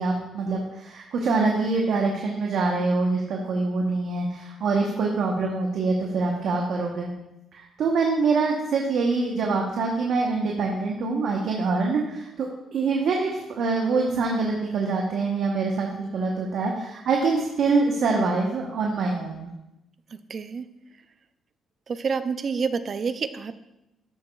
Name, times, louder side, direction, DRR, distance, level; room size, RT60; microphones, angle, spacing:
voice 1, 0.0-7.1 7.5-19.5, right 3 dB, 70° right, 0 dB, 1.0 m, -25 dB
voice 2, 20.1-20.7 21.9-23.6, right 5 dB, 45° right, 12 dB, 0.5 m, -28 dB
12.0 x 6.7 x 2.4 m, 0.91 s
cardioid pair, 90°, 0 cm